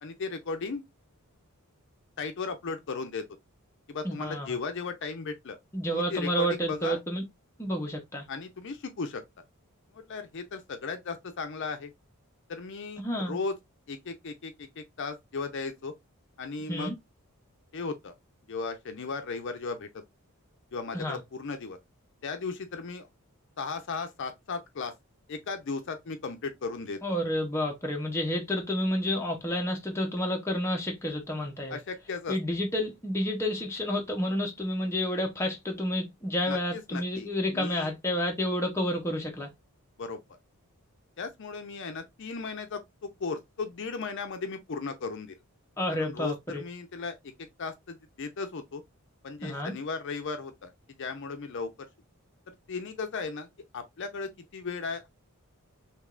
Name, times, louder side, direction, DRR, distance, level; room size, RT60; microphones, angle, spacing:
voice 1, 0.0-0.8 2.2-3.2 3.9-5.6 5.9-7.0 8.3-9.2 9.9-11.9 12.5-13.6 13.9-15.9 16.4-16.9 17.7-18.1 18.5-20.0 20.7-21.8 22.2-23.1 23.6-24.9 25.3-27.0 31.7-32.4 36.5-37.9 40.0-40.2 41.2-45.3 45.9-47.2 47.6-48.8 49.2-50.7 51.0-51.7 52.5-53.5 53.7-55.1, left 4 dB, 55° left, 0.5 m, -36 dB
voice 2, 4.0-4.6 5.7-7.2 7.6-8.2 13.0-13.4 16.7-16.9 20.9-21.2 27.0-31.8 32.3-39.5 45.8-46.6 49.4-49.7, equal, 10° left, 0.6 m, -30 dB
3.3 x 2.8 x 2.3 m
head